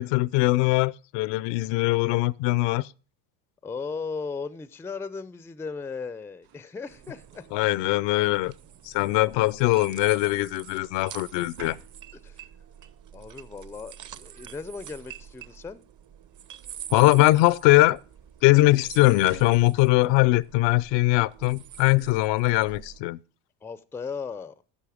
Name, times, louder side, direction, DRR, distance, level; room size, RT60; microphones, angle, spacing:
voice 1, 0.0-2.9 7.5-8.5 8.8-11.8 16.9-18.0 18.4-23.2, left 19 dB, 60° left, 0.5 m, -21 dB
voice 2, 3.6-7.5 12.1-12.5 13.1-15.8 23.6-24.6, left 5 dB, 5° left, 0.4 m, -36 dB
sound 1, 6.4-6.8 8.0-8.3 11.3-12.3 14.1-14.2 14.6-15.7 16.2-16.5 17.9-18.0 19.0-19.7 21.5-21.6 22.1-22.4, right 7 dB, 70° right, 3.6 m, -49 dB
sound 2, 6.9-23.0, right 10 dB, 35° right, 0.7 m, -46 dB
11.0 x 6.6 x 4.9 m
supercardioid pair, 80°, 50 cm